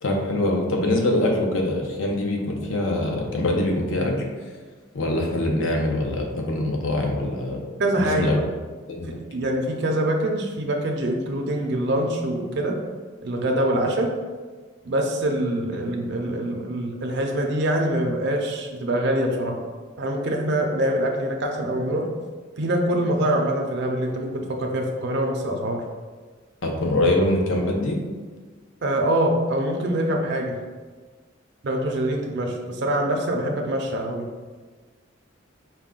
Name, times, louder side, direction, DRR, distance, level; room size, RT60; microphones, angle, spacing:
voice 1, 0.0-4.1 4.9-7.6 8.0-8.3 8.9-9.2 26.6-28.0, left 1 dB, 75° left, 1 dB, 0.7 m, -23 dB
voice 2, 7.8-8.4 9.3-12.7 13.2-14.1 14.9-19.6 20.0-22.1 22.6-25.8 28.8-30.5 31.6-34.3, right 1 dB, 60° right, 1 dB, 0.5 m, -24 dB
4.7 x 2.2 x 3.7 m, 1.4 s
head